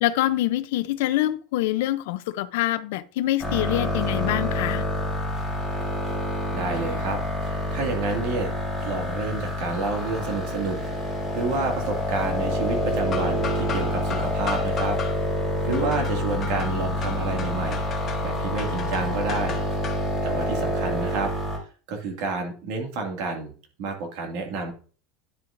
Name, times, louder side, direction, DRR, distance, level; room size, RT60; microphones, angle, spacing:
voice 1, 0.0-4.8 15.7-16.1, left 15 dB, 75° left, 0.5 m, -25 dB
sound 1, 3.4-21.6, left 1 dB, 15° right, 3.2 m, -27 dB
voice 2, 6.5-8.5 8.8-10.8 11.0-15.0 15.7-19.6 20.2-21.3 21.9-23.5 23.8-24.7, right 3 dB, 60° right, 2.0 m, -29 dB
sound 2, 9.7-20.2, left 6 dB, 30° left, 1.4 m, -39 dB
10.5 x 6.8 x 2.5 m
supercardioid pair, 160°, 0 cm